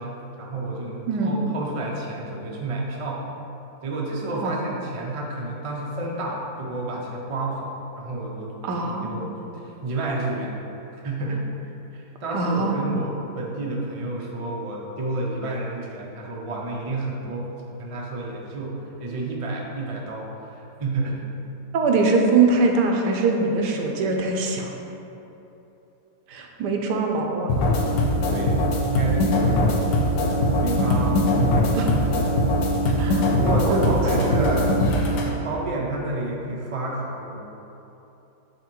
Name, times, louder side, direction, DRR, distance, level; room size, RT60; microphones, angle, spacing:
voice 1, 0.0-3.2 3.8-10.5 11.0-11.5 11.9-21.2 28.3-29.6 30.6-31.8 33.3-34.8 35.2-37.4, right 2 dB, 50° right, -2 dB, 0.4 m, -30 dB
voice 2, 8.6-9.1 12.3-12.8 21.7-24.7 26.3-27.5 31.7-31.9 33.0-33.3 33.6-34.3, right 3 dB, 80° right, 2 dB, 1.2 m, -22 dB
sound 1, 27.5-35.3, left 1 dB, 90° left, 1.4 m, -21 dB
7.9 x 2.9 x 4.6 m, 3.0 s
omnidirectional pair, 1.8 m